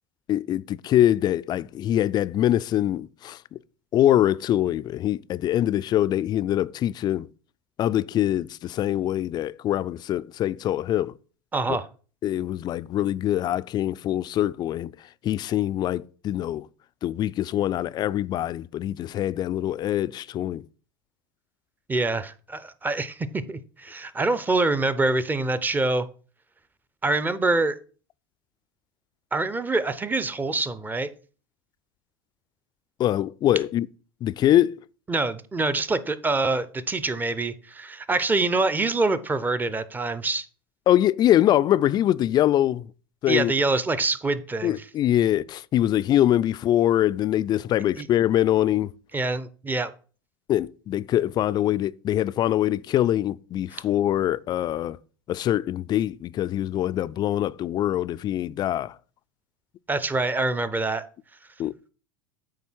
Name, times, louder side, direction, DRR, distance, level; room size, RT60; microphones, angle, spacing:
voice 1, 0.3-3.6 3.9-7.3 7.8-11.1 12.2-14.9 15.2-16.7 17.0-20.6 33.0-33.9 34.2-34.8 40.9-42.9 43.2-43.5 44.6-48.9 50.5-55.0 55.3-59.0 61.6-61.7, left 12 dB, 35° left, 0.4 m, -23 dB
voice 2, 11.5-11.9 21.9-26.1 27.0-27.8 29.3-31.1 35.1-40.5 43.3-44.8 48.0-48.1 49.1-49.9 59.9-61.0, right 3 dB, 15° right, 0.7 m, -25 dB
8.6 x 3.3 x 6.3 m
hypercardioid pair, 90°, 13 cm